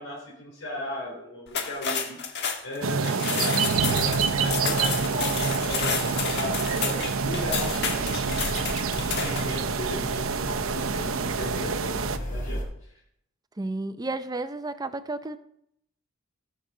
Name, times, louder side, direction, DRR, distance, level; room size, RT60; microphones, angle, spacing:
voice 1, 0.0-2.2 2.6-5.3 5.6-5.9 6.3-8.4 8.9-12.6, left 1 dB, 85° left, -5 dB, 3.8 m, -36 dB
sound 1, 1.5-9.6, left 6 dB, 55° left, 1.3 m, -31 dB
sound 2, 2.8-12.2, right 5 dB, 80° right, 0.7 m, -27 dB
sound 3, 3.7-12.6, equal, 40° left, 2.8 m, -36 dB
voice 2, 13.6-15.4, right 2 dB, 20° right, 11 dB, 0.6 m, -32 dB
17.5 x 6.7 x 3.8 m, 0.74 s
head